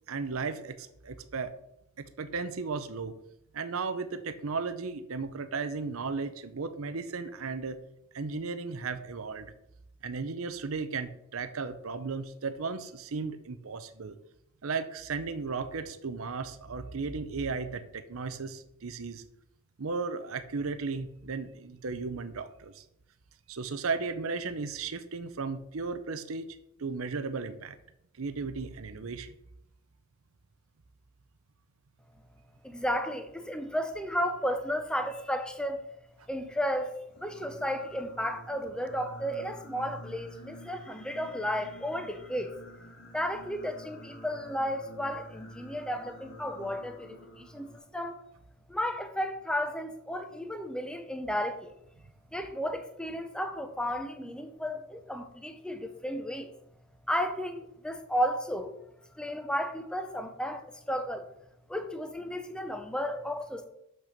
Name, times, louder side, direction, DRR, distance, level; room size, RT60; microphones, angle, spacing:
voice 1, 0.1-1.5 2.0-3.1 3.5-7.8 8.1-9.5 10.0-14.2 14.6-19.2 19.8-22.8 23.5-27.8 28.2-29.3, right 4 dB, 70° right, 11 dB, 0.7 m, -35 dB
voice 2, 32.6-35.8 36.3-42.6 43.1-48.2 48.7-51.7 52.3-56.5 57.1-58.7 59.1-61.3 61.7-63.7, equal, 5° left, 7 dB, 0.7 m, -33 dB
Singing, 37.1-47.8, equal, 60° left, 2.1 m, -49 dB
6.8 x 6.2 x 5.9 m, 0.77 s
head